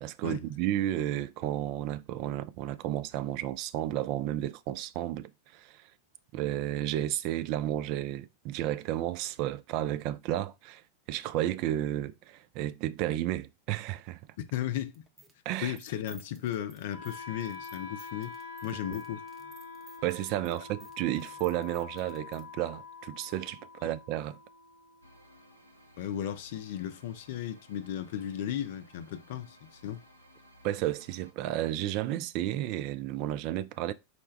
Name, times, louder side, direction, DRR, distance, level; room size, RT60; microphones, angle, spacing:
voice 1, 0.0-5.9 6.3-10.8 11.1-14.2 15.5-15.8 18.9-19.0 20.0-24.4 30.6-33.9, right 13 dB, 45° right, 0.3 m, -32 dB
voice 2, 14.4-15.0 15.6-18.3 18.6-19.2 26.0-30.0, left 10 dB, 55° left, 0.5 m, -35 dB
sound 1, 14.9-22.4, right 4 dB, 15° right, 0.8 m, -57 dB
Wind instrument woodwind instrument, 16.9-26.9, left 5 dB, 65° right, 1.8 m, -46 dB
sound 2, 25.0-31.3, equal, 85° right, 0.7 m, -58 dB
4.2 x 2.2 x 4.4 m
figure-of-eight pair, 90°, 0 cm